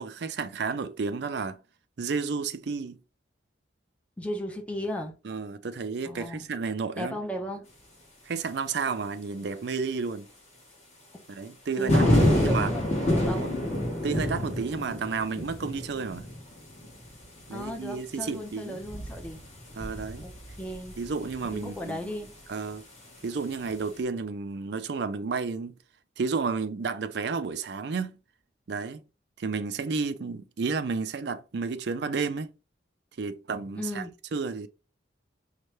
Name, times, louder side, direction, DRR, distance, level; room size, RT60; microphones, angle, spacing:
voice 1, 0.0-1.6 2.0-3.0 5.2-7.2 8.3-10.3 11.3-12.7 13.4-13.6 14.0-16.3 17.5-18.8 19.8-20.3 21.0-22.0 22.5-22.8 23.2-25.7 26.2-28.2 28.7-29.0 29.4-32.5 33.2-34.0 34.3-34.7, right 4 dB, 60° right, 0.4 m, -31 dB
voice 2, 4.2-5.2 6.0-6.5 7.0-7.7 11.8-13.5 17.5-19.4 20.2-20.3 20.6-20.9 21.5-22.4 33.8-34.1, left 1 dB, 5° left, 0.6 m, -35 dB
sound 1, 11.9-22.0 23.5-23.7, left 1 dB, 35° left, 1.3 m, -28 dB
5.3 x 2.2 x 3.1 m
head